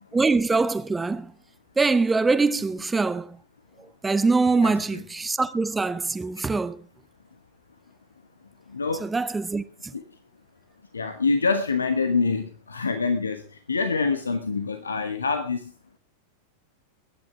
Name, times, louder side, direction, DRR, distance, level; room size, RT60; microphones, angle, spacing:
voice 1, 0.1-1.3 1.8-3.4 3.8-6.8 9.0-9.9, right 3 dB, 10° right, 0.9 m, -23 dB
voice 2, 8.7-9.0 9.9-10.0 10.9-13.4 13.7-15.7, left 4 dB, 75° left, 1.2 m, -25 dB
22.0 x 10.5 x 3.5 m
figure-of-eight pair, 90°, 0 cm